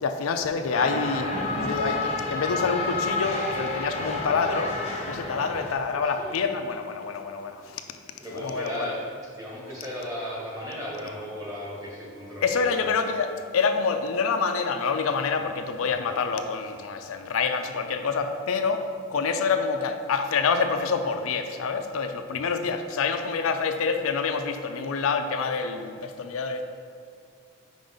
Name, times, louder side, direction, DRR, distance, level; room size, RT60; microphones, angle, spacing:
voice 1, 0.0-4.7 5.1-7.8 8.3-8.9 12.4-26.6, left 5 dB, 85° left, 6 dB, 0.4 m, -27 dB
sound 1, 0.7-5.7, left 2 dB, 30° left, 0.7 m, -30 dB
voice 2, 3.8-4.2 5.9-6.4 8.2-9.0 9.3-13.0 15.9-16.1, equal, 15° right, -6 dB, 1.5 m, -36 dB
5.2 x 5.1 x 3.9 m, 2.4 s
head